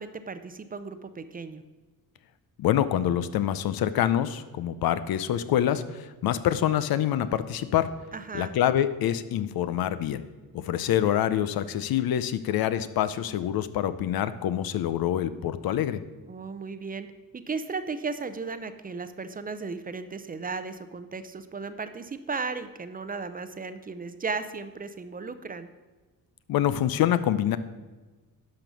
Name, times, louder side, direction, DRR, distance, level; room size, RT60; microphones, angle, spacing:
voice 1, 0.0-1.6 8.1-8.5 16.3-17.1 17.3-25.7, right 4 dB, 25° right, 11 dB, 0.6 m, -35 dB
voice 2, 2.6-7.9 8.3-10.2 10.5-16.0 26.5-27.6, left 11 dB, 75° left, 13 dB, 0.7 m, -26 dB
11.5 x 5.3 x 6.2 m, 1.2 s
cardioid pair, 120°, 36 cm